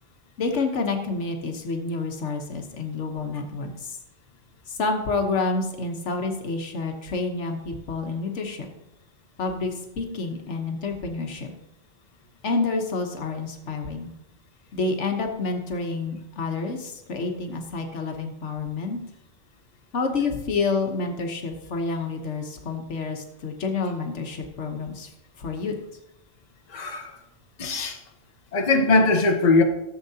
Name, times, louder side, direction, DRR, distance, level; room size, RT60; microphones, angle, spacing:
voice 1, 0.4-4.0 4.7-8.7 9.4-11.5 12.4-14.1 14.7-19.0 19.9-25.1 25.4-25.8, left 3 dB, 75° left, 4 dB, 1.3 m, -28 dB
voice 2, 26.7-27.1 27.6-28.0 28.5-29.6, left 3 dB, 40° left, 3 dB, 1.0 m, -20 dB
14.5 x 7.2 x 2.8 m, 0.89 s
omnidirectional pair, 1.2 m